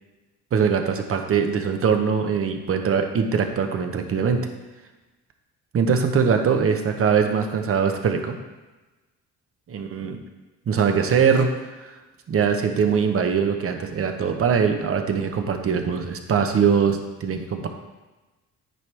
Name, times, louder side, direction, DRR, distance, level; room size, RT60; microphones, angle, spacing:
voice 1, 0.5-4.5 5.7-8.3 9.7-10.2 10.7-11.5 11.8-11.9 12.3-17.7, right 6 dB, 50° right, 5 dB, 0.8 m, -22 dB
9.1 x 4.6 x 3.3 m, 1.2 s
cardioid pair, 90°, 30 cm